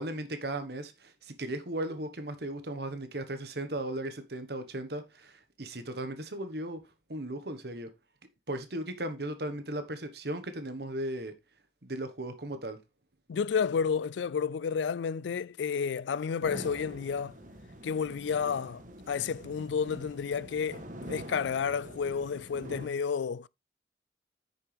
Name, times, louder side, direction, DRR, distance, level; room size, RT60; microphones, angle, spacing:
voice 1, 0.0-6.8 7.1-7.9 8.5-11.3 11.8-12.8, right 1 dB, 60° right, 1.4 m, -36 dB
voice 2, 13.3-17.4 17.8-23.5, left 6 dB, 80° left, 0.4 m, -31 dB
sound 1, 16.4-22.9, right 1 dB, 45° right, 1.4 m, -46 dB
9.3 x 6.6 x 3.4 m
head